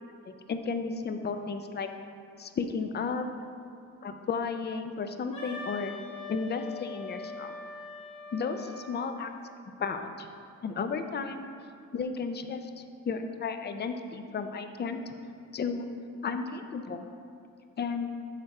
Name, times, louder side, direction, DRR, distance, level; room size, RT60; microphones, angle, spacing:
voice 1, 0.5-1.9 2.4-3.3 4.0-5.9 6.3-7.5 8.3-9.3 9.8-10.3 10.6-11.5 11.9-15.0 15.5-15.9 16.2-17.1 17.8-18.1, left 5 dB, 35° left, 7 dB, 0.5 m, -33 dB
Wind instrument woodwind instrument, 5.3-9.2, left 4 dB, 75° left, 1.6 m, -42 dB
6.6 x 4.2 x 4.8 m, 2.4 s
cardioid pair, 90°, 30 cm